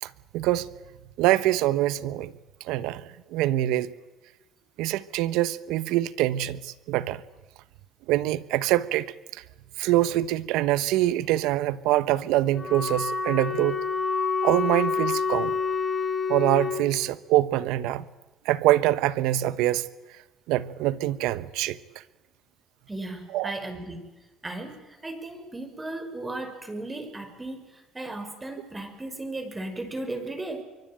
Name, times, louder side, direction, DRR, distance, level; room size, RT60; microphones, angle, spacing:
voice 1, 0.0-0.7 1.2-2.3 2.6-3.9 4.8-7.2 8.1-9.4 9.8-13.8 14.4-15.5 16.3-18.0 18.4-19.9 20.5-21.8 23.3-23.5, right 15 dB, 85° right, 1.1 m, -24 dB
Wind instrument woodwind instrument, 12.5-16.9, left 5 dB, 20° left, 3.1 m, -27 dB
voice 2, 22.9-24.1 24.4-30.6, right 2 dB, 20° right, 5.9 m, -36 dB
24.0 x 24.0 x 9.1 m
supercardioid pair, 85°, 0 cm